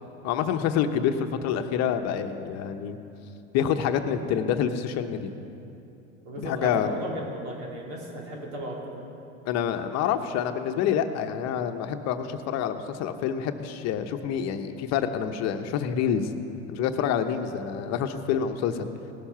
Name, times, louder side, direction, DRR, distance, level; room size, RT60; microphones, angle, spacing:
voice 1, 0.2-3.0 3.5-5.3 6.4-6.9 9.4-16.3 16.7-18.9, left 8 dB, 50° left, 7 dB, 0.9 m, -27 dB
voice 2, 6.2-9.1, right 1 dB, 70° right, -2 dB, 3.3 m, -35 dB
18.0 x 7.1 x 5.8 m, 2.7 s
hypercardioid pair, 100°, 35 cm